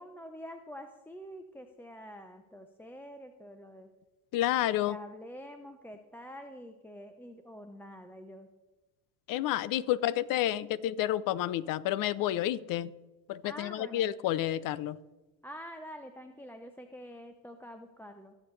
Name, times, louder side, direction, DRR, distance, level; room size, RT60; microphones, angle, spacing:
voice 1, 0.0-3.9 4.8-8.5 13.4-14.1 15.4-18.3, equal, 5° left, 0.6 m, -47 dB
voice 2, 4.3-5.0 9.3-12.9 13.3-15.0, left 13 dB, 50° left, 0.6 m, -30 dB
20.0 x 7.1 x 3.2 m
supercardioid pair, 90°, 43 cm